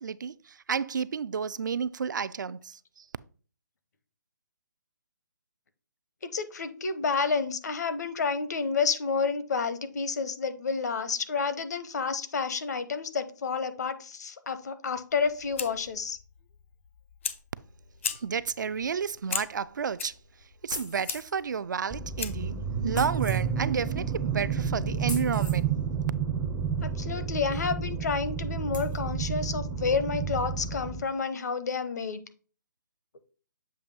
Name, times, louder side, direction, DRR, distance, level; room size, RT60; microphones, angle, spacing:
voice 1, 0.0-3.0 18.0-20.1 20.6-22.6 22.8-25.7, right 6 dB, 75° right, 0.4 m, -31 dB
voice 2, 6.3-16.2 26.8-32.2, left 5 dB, 60° left, 0.9 m, -30 dB
Fire, 15.1-22.6, left 7 dB, 40° left, 0.5 m, -39 dB
sound 1, 20.7-21.4 22.9-23.4 25.1-25.6 27.5-27.6 28.1-28.2 28.7-29.0, left 2 dB, 80° left, 2.8 m, -39 dB
sound 2, 21.9-31.0, right 6 dB, 5° right, 0.4 m, -30 dB
7.4 x 2.6 x 5.2 m
hypercardioid pair, 165°, 10 cm